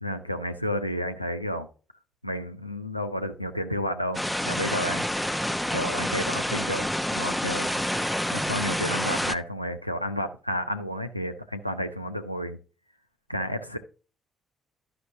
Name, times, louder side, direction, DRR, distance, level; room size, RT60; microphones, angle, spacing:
voice 1, 0.0-1.7 2.2-5.1 5.7-7.7 8.3-12.6 13.3-13.8, equal, 90° left, 0.4 m, -31 dB
sound 1, 4.1-9.3, equal, 5° left, 0.6 m, -28 dB
12.0 x 5.8 x 2.8 m
figure-of-eight pair, 45°, 0 cm